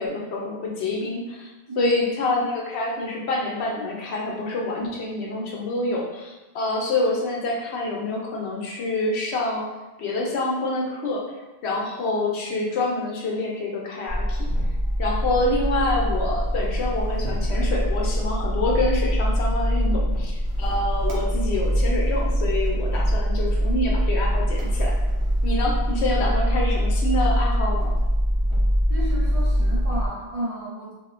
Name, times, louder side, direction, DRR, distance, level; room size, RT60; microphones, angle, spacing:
voice 1, 0.0-1.5 1.8-9.7 10.0-11.2 11.6-14.5 15.0-24.9 25.4-27.9, left 2 dB, 90° left, -2 dB, 0.9 m, -27 dB
sound 1, 14.1-30.1, equal, 85° right, 1.0 m, -23 dB
voice 2, 28.9-30.9, right 1 dB, 55° right, -5 dB, 0.4 m, -31 dB
3.5 x 2.1 x 2.4 m, 1.1 s
omnidirectional pair, 1.1 m